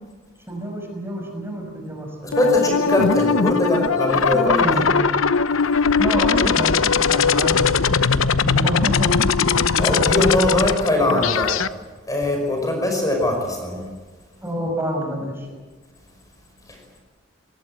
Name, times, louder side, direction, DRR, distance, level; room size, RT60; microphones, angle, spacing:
voice 1, 0.5-2.4 4.3-5.0 6.0-10.5 14.4-15.5, equal, 10° right, 2 dB, 6.1 m, -28 dB
voice 2, 2.2-4.4 9.8-11.6 12.1-13.8, left 1 dB, 15° left, 2 dB, 5.6 m, -21 dB
sound 1, 2.3-11.7, left 5 dB, 85° left, 0.9 m, -20 dB
27.0 x 20.0 x 8.9 m, 1.3 s
head